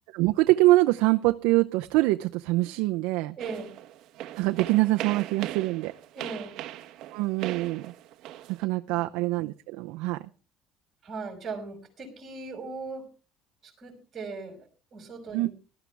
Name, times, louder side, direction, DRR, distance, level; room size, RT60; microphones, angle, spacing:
voice 1, 0.1-3.3 4.4-5.9 7.1-7.9 8.5-10.2 15.3-15.5, right 19 dB, 80° right, 7 dB, 0.6 m, -24 dB
voice 2, 3.4-3.7 6.1-6.6 11.0-13.0 13.6-15.5, right 4 dB, 30° right, 2 dB, 5.7 m, -38 dB
sound 1, 3.4-8.7, right 13 dB, 60° right, 1.1 m, -39 dB
19.0 x 12.5 x 3.4 m, 0.36 s
cardioid pair, 155°, 0 cm